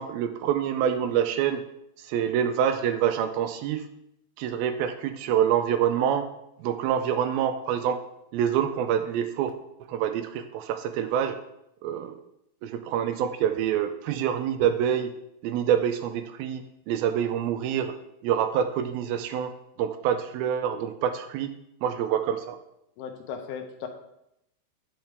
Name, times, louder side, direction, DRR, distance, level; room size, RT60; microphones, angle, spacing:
voice 1, 0.0-1.6 2.0-3.9 4.4-6.3 6.6-8.0 8.3-9.5 9.9-11.4 11.8-12.2 12.6-15.1 15.4-18.0 18.2-19.5 19.8-21.5 21.8-22.6, right 9 dB, 80° right, 8 dB, 2.3 m, -26 dB
voice 2, 23.0-23.9, left 7 dB, 90° left, 5 dB, 2.8 m, -36 dB
8.7 x 6.4 x 3.5 m, 0.80 s
omnidirectional pair, 4.5 m